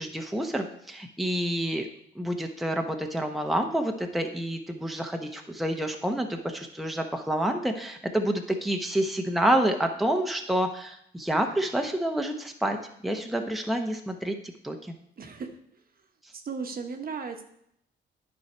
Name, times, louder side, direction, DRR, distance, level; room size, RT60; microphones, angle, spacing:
voice 1, 0.0-1.9 2.1-12.8 13.0-14.4 14.6-15.0, right 1 dB, ahead, 3 dB, 0.9 m, -28 dB
voice 2, 15.2-15.6 16.3-17.4, right 5 dB, 50° right, 5 dB, 1.1 m, -36 dB
10.5 x 4.7 x 4.5 m, 0.73 s
cardioid pair, 90°, 20 cm